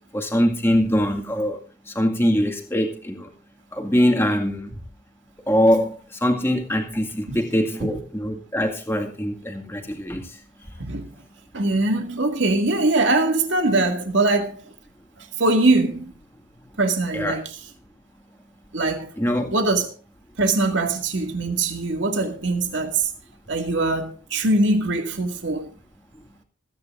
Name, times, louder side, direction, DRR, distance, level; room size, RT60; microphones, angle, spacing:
voice 1, 0.1-1.6 1.9-3.3 3.7-4.8 5.5-10.4 17.1-17.4 19.2-19.6, equal, 10° left, 2.1 m, -23 dB
voice 2, 10.8-11.1 11.5-14.6 15.2-16.1 16.8-17.6 18.7-19.1 19.5-19.9 20.4-23.1 23.5-25.7, right 2 dB, 65° right, 2.2 m, -22 dB
26.0 x 9.8 x 2.6 m
head